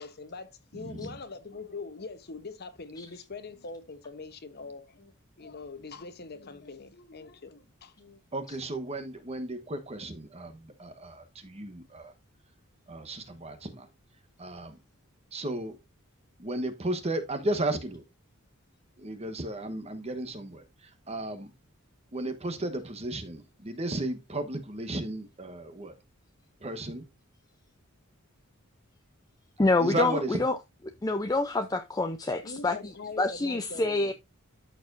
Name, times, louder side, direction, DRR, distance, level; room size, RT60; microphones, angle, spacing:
voice 1, 0.0-8.2 32.4-34.0, left 4 dB, 50° left, 0.9 m, -43 dB
voice 2, 0.8-1.1 8.3-12.1 12.9-13.9 14.4-14.8 15.3-15.8 16.4-18.0 19.0-20.6 21.1-21.5 22.1-25.9 26.6-27.0 29.8-30.4 33.8-33.9, right 1 dB, 30° right, 1.1 m, -34 dB
voice 3, 29.6-30.6 31.0-32.8 33.2-34.1, left 2 dB, 15° left, 0.5 m, -26 dB
13.5 x 4.6 x 2.6 m
head